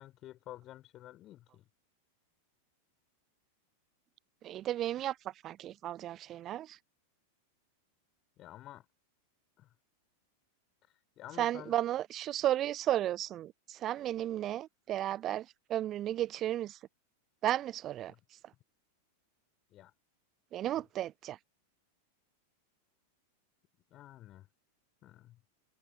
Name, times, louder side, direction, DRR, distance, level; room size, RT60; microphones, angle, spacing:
voice 1, 0.0-1.7 8.4-8.8 9.6-9.7 11.2-11.8 18.1-18.2 19.7-19.9 20.8-20.9 23.9-24.5 25.0-25.4, left 14 dB, 35° left, 4.8 m, -50 dB
voice 2, 4.4-6.8 11.4-16.8 17.4-18.1 20.5-21.4, right 12 dB, 30° right, 1.0 m, -34 dB
figure-of-eight pair, 90°, 0 cm